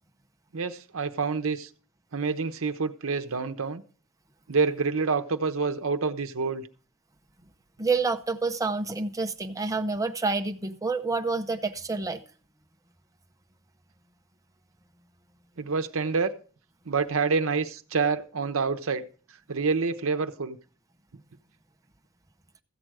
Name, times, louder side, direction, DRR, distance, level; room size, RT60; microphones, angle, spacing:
voice 1, 0.5-1.7 2.1-3.8 4.5-6.7 15.6-16.3 16.9-19.0 19.5-20.6, right 4 dB, 70° right, 0.8 m, -27 dB
voice 2, 7.8-12.2, right 3 dB, 15° right, 0.7 m, -28 dB
14.5 x 7.7 x 4.7 m
head